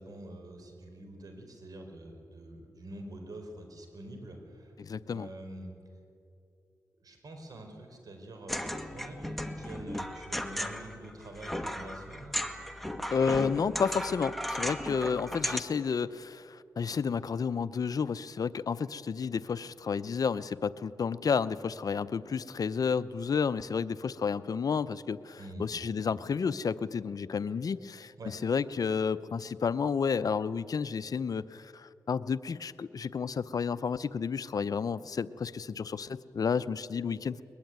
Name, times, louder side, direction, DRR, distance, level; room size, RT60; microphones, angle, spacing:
voice 1, 0.0-4.7 5.0-5.7 7.0-8.6 8.9-12.3 25.4-25.7 28.2-28.3, right 1 dB, 60° right, 4 dB, 5.0 m, -46 dB
voice 2, 4.8-5.3 13.1-37.4, left 6 dB, 55° left, 15 dB, 0.7 m, -31 dB
sound 1, 8.5-15.6, left 1 dB, ahead, 1.6 m, -36 dB
22.0 x 21.0 x 9.4 m, 2.6 s
cardioid pair, 75°, 7 cm